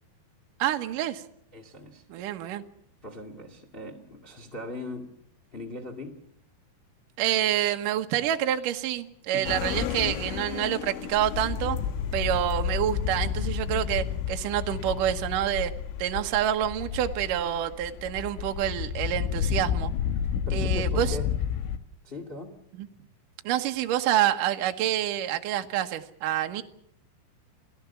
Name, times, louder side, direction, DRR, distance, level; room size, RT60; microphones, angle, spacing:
voice 1, 0.6-1.2 2.1-2.6 7.2-11.8 12.1-15.7 16.0-19.9 20.5-21.2 22.8-22.9 23.4-26.6, right 12 dB, 70° right, 6 dB, 2.0 m, -27 dB
voice 2, 1.5-2.0 3.0-5.1 5.5-6.2 9.3-9.7 20.4-21.3 22.0-22.5, left 2 dB, 35° left, 3 dB, 0.9 m, -39 dB
sound 1, 9.5-21.8, left 8 dB, 80° left, 3.6 m, -31 dB
29.5 x 18.0 x 7.1 m, 0.70 s
omnidirectional pair, 5.6 m